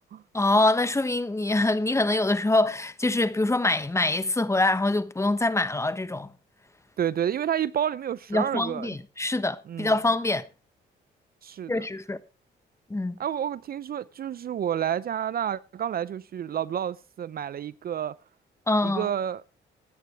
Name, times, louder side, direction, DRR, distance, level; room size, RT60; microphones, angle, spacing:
voice 1, 0.3-6.3 8.3-10.4 11.7-12.2 12.9-13.2 18.7-19.1, left 2 dB, 15° left, 1.1 m, -24 dB
voice 2, 7.0-9.0 9.7-9.9 11.4-11.9 13.2-18.1 18.8-19.4, right 9 dB, 50° right, 0.5 m, -30 dB
16.5 x 10.0 x 3.3 m
cardioid pair, 90°, 20 cm